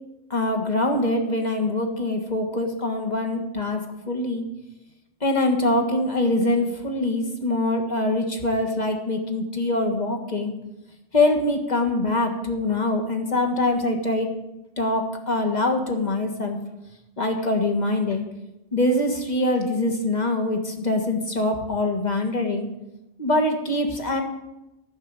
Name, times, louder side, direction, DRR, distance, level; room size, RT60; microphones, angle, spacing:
voice 1, 0.3-4.4 5.2-10.5 11.1-14.3 14.8-16.6 17.2-18.2 18.7-22.7 23.2-24.2, left 2 dB, 40° left, 3 dB, 1.7 m, -24 dB
12.0 x 6.3 x 8.9 m, 0.94 s
omnidirectional pair, 1.2 m